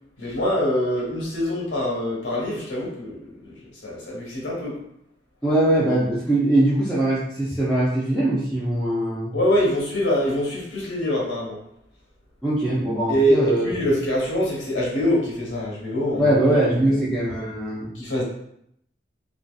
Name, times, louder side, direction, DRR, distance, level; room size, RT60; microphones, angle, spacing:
voice 1, 0.2-3.5 3.8-4.7 9.3-11.6 13.1-16.4 16.7-17.0 17.9-18.2, equal, 80° left, -4 dB, 1.0 m, -24 dB
voice 2, 5.4-9.4 12.4-13.7 16.2-17.9, right 1 dB, 5° left, -10 dB, 0.5 m, -21 dB
2.6 x 2.4 x 2.3 m, 0.72 s
head